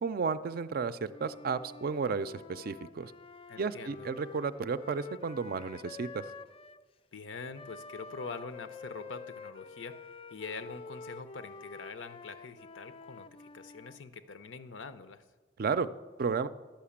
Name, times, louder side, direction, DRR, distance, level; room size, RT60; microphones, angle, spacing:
voice 1, 0.0-3.1 3.6-6.2 15.6-15.9 16.2-16.5, right 5 dB, 50° right, 14 dB, 0.4 m, -33 dB
Wind instrument woodwind instrument, 1.1-6.8 7.5-14.0, left 4 dB, 30° left, 0.3 m, -48 dB
voice 2, 3.5-4.1 7.1-15.2, left 4 dB, 85° left, 12 dB, 0.7 m, -44 dB
12.0 x 5.8 x 8.5 m, 1.4 s
head